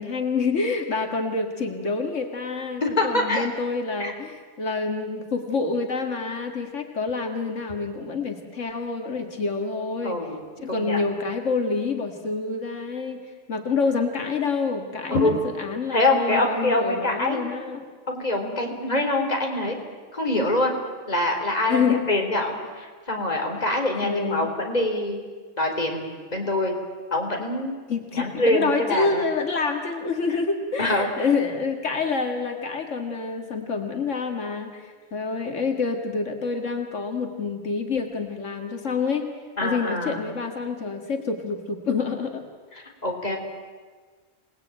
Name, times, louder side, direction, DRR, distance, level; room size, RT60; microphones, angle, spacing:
voice 1, 0.0-10.2 10.6-17.9 21.7-22.1 24.0-24.5 27.9-39.3 39.6-42.4, left 4 dB, 90° left, 5 dB, 2.3 m, -27 dB
voice 2, 2.8-3.5 4.0-4.1 10.0-11.0 15.1-15.4 15.9-17.4 18.1-19.8 20.1-20.7 21.1-25.2 25.6-26.7 27.1-27.8 28.1-29.2 30.8-31.1 39.6-40.2 43.0-43.4, left 1 dB, 35° left, 2 dB, 3.9 m, -25 dB
27.5 x 19.0 x 9.1 m, 1.5 s
omnidirectional pair, 1.2 m